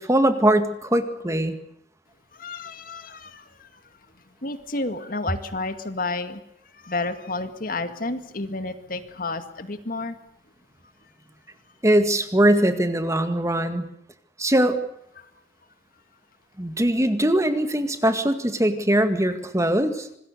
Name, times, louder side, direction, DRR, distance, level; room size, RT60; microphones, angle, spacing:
voice 1, 0.0-1.6 11.8-13.9 14.4-14.8 16.6-20.1, right 1 dB, 20° right, 8 dB, 1.9 m, -21 dB
voice 2, 2.3-3.7 4.4-6.4 6.8-10.2 15.2-15.3, left 2 dB, 55° left, 9 dB, 2.1 m, -31 dB
26.0 x 20.5 x 6.8 m, 0.75 s
head